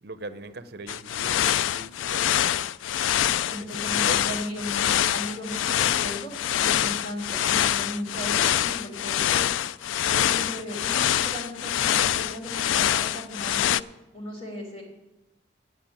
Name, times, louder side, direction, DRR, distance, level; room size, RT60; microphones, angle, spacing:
voice 1, 0.0-2.6 3.6-4.4, right 2 dB, 55° right, 12 dB, 0.7 m, -40 dB
sound 1, 0.9-13.8, left 11 dB, 90° left, 0.3 m, -25 dB
voice 2, 3.4-6.3 6.6-9.4 10.0-13.7 14.1-14.8, equal, 35° left, -1 dB, 3.0 m, -36 dB
9.3 x 7.6 x 8.8 m, 1.0 s
head